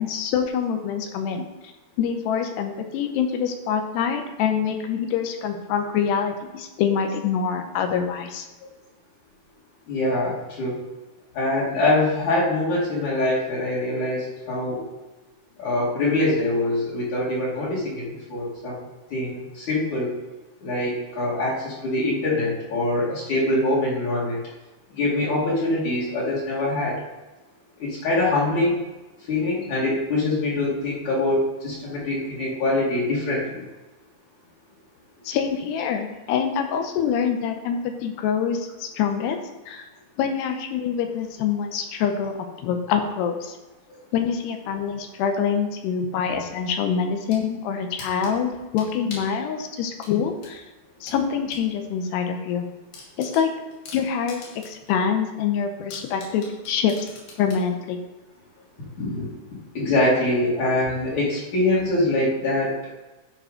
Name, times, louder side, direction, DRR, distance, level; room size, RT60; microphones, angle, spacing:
voice 1, 0.0-1.4 2.0-8.5 35.2-39.4 39.7-39.8 40.2-42.3 42.6-43.6 44.1-50.6 51.0-52.6 53.2-53.5 53.9-54.4 54.7-57.1 57.4-58.0, left 7 dB, 90° left, 5 dB, 3.1 m, -25 dB
voice 2, 9.9-10.8 11.3-14.8 15.6-20.1 20.6-24.4 24.9-27.0 27.8-28.8 29.2-33.6 43.9-44.0 59.0-59.3 59.7-62.9, left 2 dB, 50° left, -7 dB, 3.1 m, -24 dB
sound 1, 47.0-47.5 48.0-49.4 50.0-51.7 52.0-52.1 52.5-52.6 52.9-54.9 55.2-55.3 55.9-57.7, left 3 dB, 75° left, 4.0 m, -42 dB
12.5 x 5.1 x 5.1 m, 1.1 s
omnidirectional pair, 4.7 m